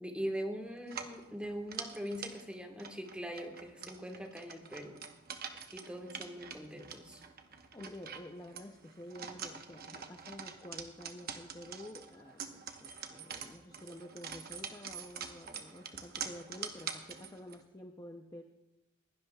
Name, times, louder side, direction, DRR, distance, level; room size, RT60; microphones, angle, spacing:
voice 1, 0.0-5.0 5.7-7.2, equal, 5° right, 3 dB, 1.4 m, -41 dB
sound 1, 0.8-17.6, right 6 dB, 45° right, 1.0 m, -46 dB
voice 2, 7.7-18.4, left 1 dB, 15° left, 4 dB, 0.5 m, -50 dB
21.0 x 16.5 x 2.3 m, 0.98 s
head